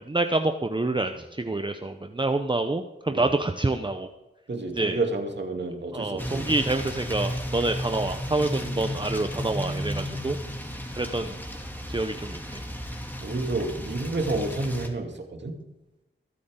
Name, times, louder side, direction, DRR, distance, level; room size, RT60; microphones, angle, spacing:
voice 1, 0.1-4.1 4.7-5.0 5.9-10.4 11.0-11.4 11.9-12.6, right 2 dB, 20° right, 6 dB, 0.8 m, -27 dB
voice 2, 4.5-6.5 13.2-15.5, right 2 dB, 55° right, 3 dB, 2.5 m, -30 dB
sound 1, 6.2-14.9, equal, 10° left, 2.6 m, -34 dB
22.5 x 8.5 x 3.9 m, 0.98 s
wide cardioid pair, 60°, 21 cm